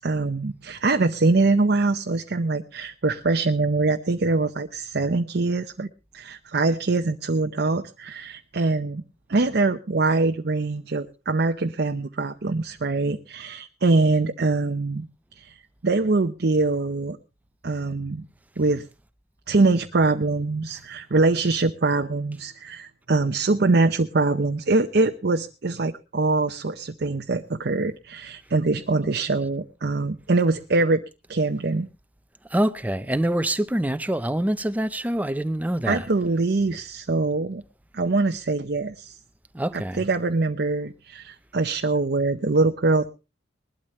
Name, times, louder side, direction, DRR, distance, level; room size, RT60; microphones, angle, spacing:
voice 1, 0.0-5.9 6.1-9.0 9.3-15.1 15.3-17.2 17.6-18.3 18.6-18.9 19.5-31.0 31.3-31.9 35.8-37.6 37.9-39.1 39.7-43.1, right 3 dB, 55° right, 0.7 m, -23 dB
voice 2, 32.5-36.0 39.5-40.0, right 1 dB, 10° right, 0.6 m, -25 dB
20.5 x 12.0 x 3.1 m
head